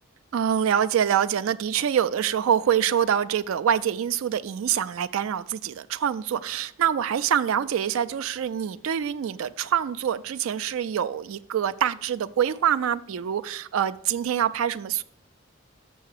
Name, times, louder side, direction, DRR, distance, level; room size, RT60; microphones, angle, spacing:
voice 1, 0.3-15.0, right 9 dB, 80° right, 0.4 m, -25 dB
6.9 x 5.6 x 6.5 m
head